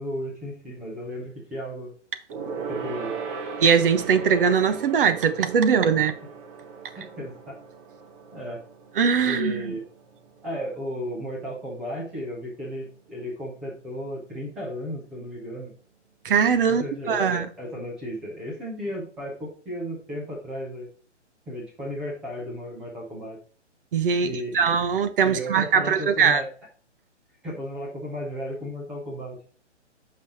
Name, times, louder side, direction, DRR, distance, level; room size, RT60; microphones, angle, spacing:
voice 1, 0.0-1.9 2.7-3.1 6.0-6.1 7.0-7.6 8.3-8.6 9.2-9.8 10.4-15.7 16.6-20.9 21.5-23.4 24.2-24.7 25.2-26.5 27.4-29.4, equal, ahead, 0.4 m, -34 dB
Gong, 2.3-12.1 12.4-12.6 12.9-13.0, right 5 dB, 25° right, 1.2 m, -38 dB
voice 2, 3.6-6.1 9.0-9.7 16.2-17.5 23.9-26.4, right 6 dB, 45° right, 1.1 m, -21 dB
8.4 x 5.6 x 2.9 m
figure-of-eight pair, 135°, 36 cm